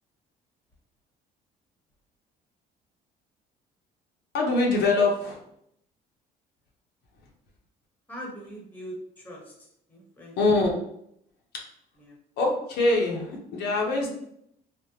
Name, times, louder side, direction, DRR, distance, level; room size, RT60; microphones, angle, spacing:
voice 1, 4.3-5.4 10.4-10.8 12.4-14.1, left 2 dB, 80° left, -1 dB, 0.7 m, -23 dB
voice 2, 8.1-10.4 12.0-12.2, equal, 10° left, -1 dB, 0.9 m, -42 dB
3.4 x 2.1 x 2.8 m, 0.74 s
cardioid pair, 110°, 17 cm